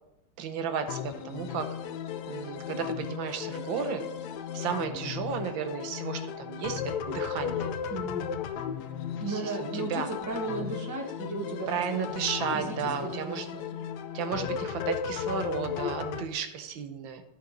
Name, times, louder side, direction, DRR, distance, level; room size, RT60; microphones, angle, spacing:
voice 1, 0.4-1.7 2.3-4.0 4.5-7.7 9.3-10.1 11.7-13.5 14.1-17.2, right 7 dB, 75° right, 7 dB, 1.5 m, -33 dB
sound 1, 0.9-16.2, left 8 dB, 75° left, 0.9 m, -35 dB
voice 2, 7.9-8.3 9.2-12.1 12.5-13.6, right 2 dB, 10° right, 0 dB, 0.9 m, -35 dB
11.5 x 4.8 x 3.9 m, 0.89 s
omnidirectional pair, 2.2 m